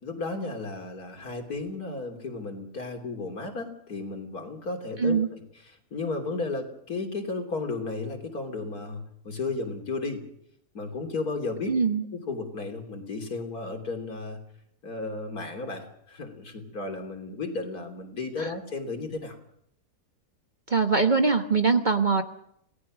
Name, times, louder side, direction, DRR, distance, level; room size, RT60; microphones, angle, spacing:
voice 1, 0.0-5.4 5.7-10.2 10.7-11.8 12.1-14.4 14.8-19.4, left 3 dB, 75° left, 4 dB, 3.8 m, -34 dB
voice 2, 11.7-12.0 18.4-18.5 20.7-22.2, right 4 dB, 30° right, 7 dB, 1.3 m, -22 dB
27.5 x 18.0 x 6.3 m, 0.71 s
omnidirectional pair, 1.6 m